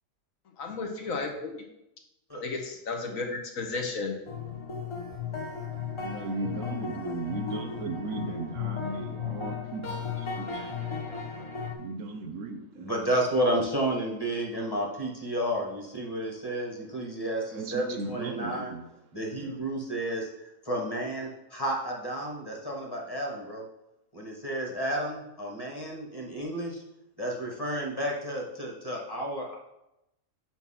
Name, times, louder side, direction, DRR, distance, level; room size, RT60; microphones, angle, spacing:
voice 1, 0.6-1.5 2.4-4.2, left 3 dB, 70° left, 3 dB, 1.3 m, -33 dB
sound 1, 4.3-11.7, left 6 dB, 35° left, 0.5 m, -35 dB
voice 2, 6.0-12.7 17.5-18.9 19.3-19.6, right 3 dB, 65° right, 6 dB, 0.9 m, -37 dB
voice 3, 12.8-18.7 19.1-20.3 20.6-23.6 24.1-26.8 27.2-29.6, right 1 dB, 15° left, -1 dB, 1.4 m, -31 dB
5.6 x 4.5 x 5.7 m, 0.87 s
omnidirectional pair, 1.5 m